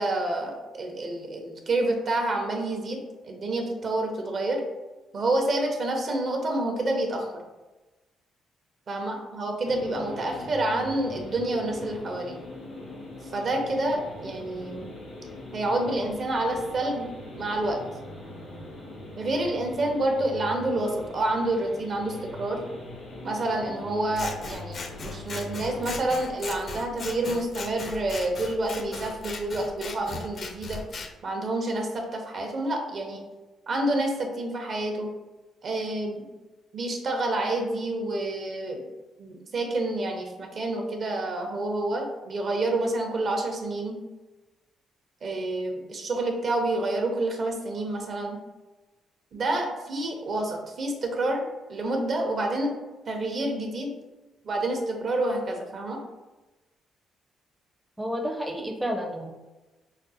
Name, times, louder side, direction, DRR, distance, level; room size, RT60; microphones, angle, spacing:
voice 1, 0.0-4.6 5.1-7.3 8.9-12.4 13.2-14.9 15.5-17.1 17.3-17.8 19.2-22.6 23.2-30.8 31.2-33.2 33.7-35.1 35.6-36.2 36.7-38.8 39.2-44.0 45.2-48.4 49.3-52.7 53.1-53.9 54.4-56.0, right 2 dB, 50° right, 3 dB, 0.7 m, -28 dB
sound 1, 9.7-26.0, left 2 dB, 90° left, 1.2 m, -42 dB
Scissors, 24.1-31.1, left 3 dB, 50° left, 0.5 m, -38 dB
voice 2, 58.0-59.3, equal, 10° right, 1 dB, 0.5 m, -30 dB
5.0 x 2.0 x 2.7 m, 1.1 s
cardioid pair, 90°, 0 cm